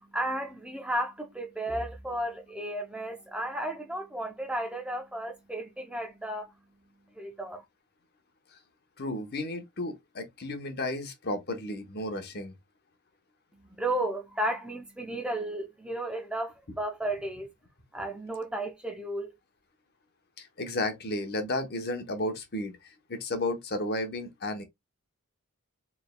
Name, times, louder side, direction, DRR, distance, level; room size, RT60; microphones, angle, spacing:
voice 1, 0.1-6.5 7.2-7.6 13.8-17.5 17.9-19.3, right 1 dB, 5° right, 0.5 m, -33 dB
voice 2, 9.0-12.5 20.4-24.6, left 1 dB, 45° left, 0.9 m, -33 dB
4.5 x 3.4 x 2.2 m
head